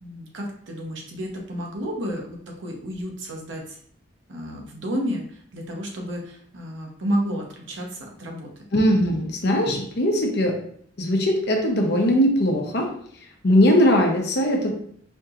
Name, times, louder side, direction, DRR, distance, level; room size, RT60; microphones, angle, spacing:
voice 1, 0.0-3.8 4.3-8.5, equal, 85° right, 1 dB, 0.9 m, -31 dB
voice 2, 8.7-10.6 11.0-12.9 13.4-14.7, equal, 60° left, 1 dB, 0.8 m, -20 dB
4.4 x 2.9 x 2.5 m, 0.62 s
head